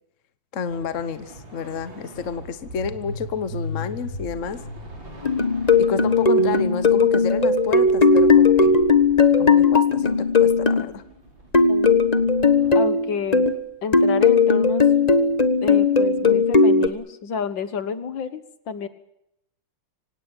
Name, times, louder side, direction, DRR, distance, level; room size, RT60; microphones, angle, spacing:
voice 1, 0.5-4.6 5.8-8.8 9.4-11.0, left 6 dB, 45° left, 12 dB, 1.3 m, -30 dB
sound 1, 0.7-12.7, left 1 dB, 65° right, 6.5 m, -39 dB
sound 2, 5.2-10.8 11.5-13.6 13.9-16.9, left 4 dB, 25° left, 1.2 m, -17 dB
voice 2, 11.7-12.0 12.7-13.5 13.8-14.8 15.6-18.9, left 6 dB, 65° left, 12 dB, 2.1 m, -30 dB
25.0 x 18.0 x 8.9 m, 0.80 s
omnidirectional pair, 2.3 m